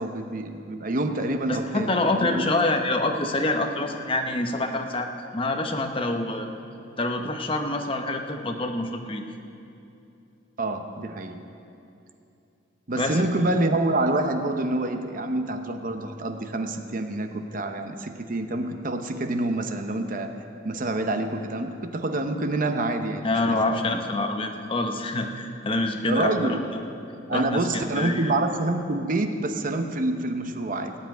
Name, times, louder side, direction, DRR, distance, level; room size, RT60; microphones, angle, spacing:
voice 1, 0.0-2.5 10.6-11.4 12.9-20.4 20.6-23.2 26.1-26.6 27.3-30.9, right 2 dB, 45° right, 6 dB, 0.8 m, -27 dB
voice 2, 1.5-6.5 7.0-9.2 12.9-13.2 23.2-26.8 27.3-28.3, left 2 dB, 25° left, 4 dB, 0.9 m, -26 dB
17.0 x 5.8 x 9.3 m, 2.7 s
head